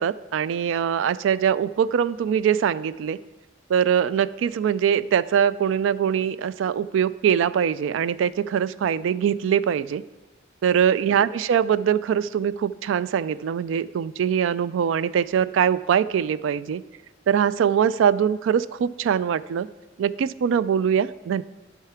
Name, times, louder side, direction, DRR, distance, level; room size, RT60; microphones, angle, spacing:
voice 1, 0.0-3.2 3.7-10.0 10.6-16.8 17.3-19.7 20.0-21.4, right 8 dB, 80° right, 18 dB, 0.3 m, -22 dB
8.1 x 5.7 x 5.7 m, 1.2 s
head